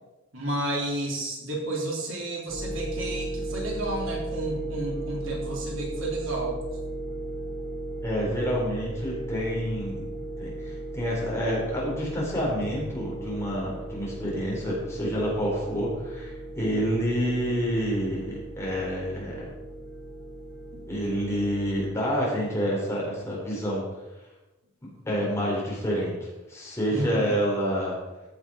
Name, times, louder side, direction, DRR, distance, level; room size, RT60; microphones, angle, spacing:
voice 1, 0.3-6.6 26.9-27.3, right 1 dB, 65° right, -2 dB, 3.5 m, -31 dB
sound 1, 2.5-21.9, right 2 dB, 10° right, 5.0 m, -36 dB
voice 2, 8.0-10.1 10.4-19.5 20.9-23.8 24.8-27.9, equal, 15° left, -5 dB, 4.2 m, -28 dB
14.5 x 7.8 x 5.0 m, 1.1 s
head